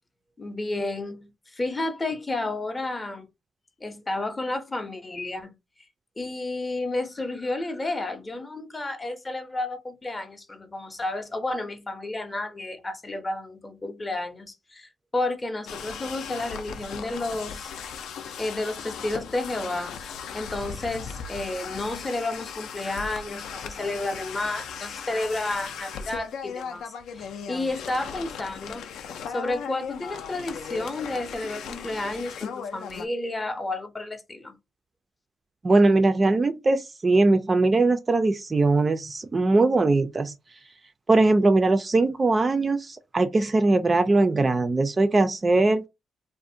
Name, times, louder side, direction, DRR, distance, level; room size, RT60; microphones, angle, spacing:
voice 1, 0.4-3.3 3.8-5.5 6.2-17.7 18.4-20.0 20.3-28.9 29.3-34.6, left 2 dB, 20° left, 0.5 m, -31 dB
sound 1, 15.7-33.1, left 7 dB, 75° left, 0.4 m, -37 dB
voice 2, 35.6-40.3 41.1-45.8, right 2 dB, 30° right, 0.3 m, -21 dB
2.4 x 2.1 x 2.6 m
cardioid pair, 90°, 0 cm